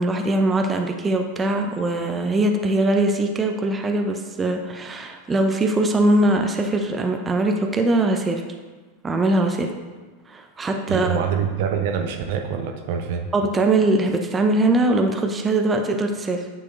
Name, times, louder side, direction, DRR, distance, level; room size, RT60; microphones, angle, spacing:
voice 1, 0.0-8.4 9.0-9.7 10.3-11.2 13.3-16.5, right 2 dB, 20° right, 4 dB, 0.7 m, -21 dB
voice 2, 10.9-13.3, right 7 dB, 60° right, 4 dB, 0.8 m, -25 dB
9.6 x 6.7 x 2.7 m, 1.4 s
figure-of-eight pair, 90°, 0 cm